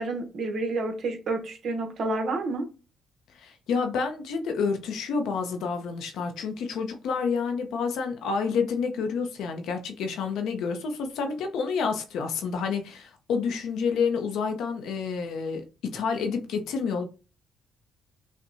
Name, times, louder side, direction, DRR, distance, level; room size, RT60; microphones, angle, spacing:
voice 1, 0.0-2.6, right 2 dB, 65° right, 0.9 m, -29 dB
voice 2, 3.4-17.0, left 5 dB, 80° left, 0.7 m, -29 dB
5.7 x 2.2 x 2.7 m
cardioid pair, 90°, 0 cm